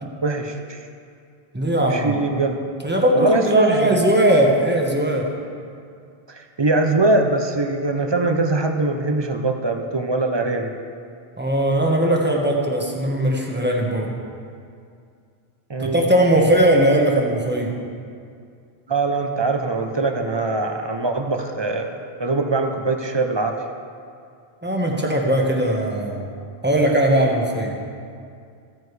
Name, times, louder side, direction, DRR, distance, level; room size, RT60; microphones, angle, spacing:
voice 1, 0.2-0.8 1.8-2.6 3.1-4.0 6.3-10.7 15.7-16.0 18.9-23.6, right 2 dB, 30° right, 4 dB, 0.6 m, -22 dB
voice 2, 1.5-2.2 2.8-5.3 11.4-14.1 15.8-17.8 24.6-26.3 26.6-27.8, right 1 dB, 10° right, -1 dB, 1.2 m, -19 dB
15.5 x 9.4 x 3.3 m, 2.3 s
omnidirectional pair, 1.1 m